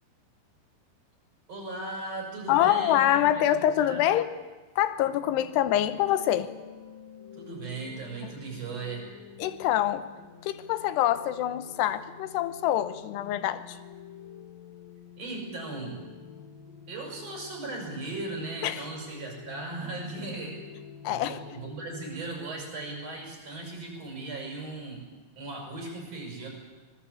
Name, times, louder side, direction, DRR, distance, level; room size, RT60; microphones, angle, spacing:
voice 1, 1.5-3.4 3.8-4.0 7.3-9.0 15.2-16.0 16.9-20.6 21.0-25.0 25.4-26.5, right 3 dB, 35° right, 0 dB, 7.4 m, -37 dB
voice 2, 2.5-4.3 4.8-6.5 9.4-10.1 10.4-13.8 18.6-18.8 21.0-21.4, left 12 dB, 85° left, 13 dB, 3.0 m, -25 dB
sound 1, 5.7-22.1, left 8 dB, 60° left, 3.4 m, -48 dB
25.0 x 20.0 x 8.4 m, 1.2 s
omnidirectional pair, 4.7 m